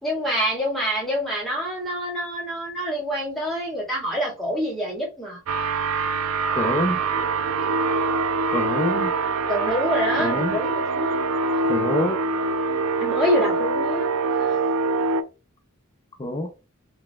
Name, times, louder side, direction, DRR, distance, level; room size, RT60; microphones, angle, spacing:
voice 1, 0.0-5.4 9.5-11.2 13.0-14.6, equal, ahead, 2.0 m, -26 dB
sound 1, 5.5-15.2, right 3 dB, 90° right, 0.4 m, -24 dB
voice 2, 6.6-7.0 8.5-9.1 10.2-10.5 11.7-12.2 16.2-16.5, left 1 dB, 25° left, 0.5 m, -25 dB
4.1 x 3.2 x 2.3 m
head